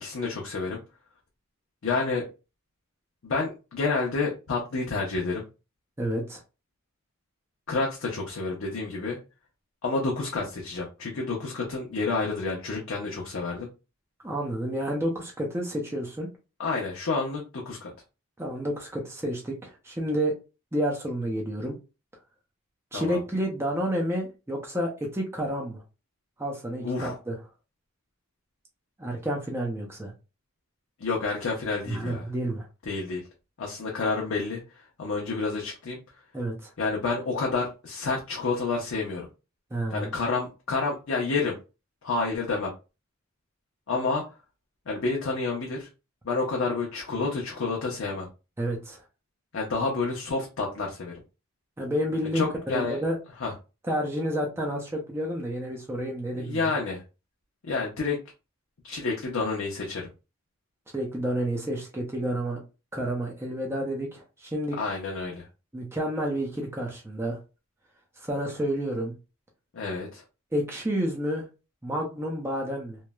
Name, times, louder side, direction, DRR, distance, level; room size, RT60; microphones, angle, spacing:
voice 1, 0.0-0.8 1.8-2.3 3.2-5.4 7.7-9.2 9.8-13.7 16.6-17.9 22.9-23.2 26.8-27.2 31.0-32.3 32.9-33.2 33.6-36.0 36.8-39.3 39.9-41.6 42.0-42.7 43.9-44.2 44.9-45.9 46.2-48.3 49.5-51.2 52.3-53.0 53.4-53.5 56.3-57.0 57.6-58.2 58.8-60.1 64.8-65.5 69.7-70.2, left 3 dB, 65° left, -2 dB, 0.6 m, -29 dB
voice 2, 6.0-6.4 14.2-16.3 18.4-20.4 20.7-21.8 22.9-25.8 26.4-27.4 29.0-30.1 31.9-32.7 36.3-36.7 39.7-40.1 48.6-49.0 51.8-53.2 53.9-56.7 60.9-62.6 62.9-64.8 65.7-67.4 68.2-69.1 70.5-71.4 71.8-73.0, equal, 10° right, -1 dB, 0.4 m, -30 dB
3.0 x 2.0 x 2.2 m, 0.30 s
head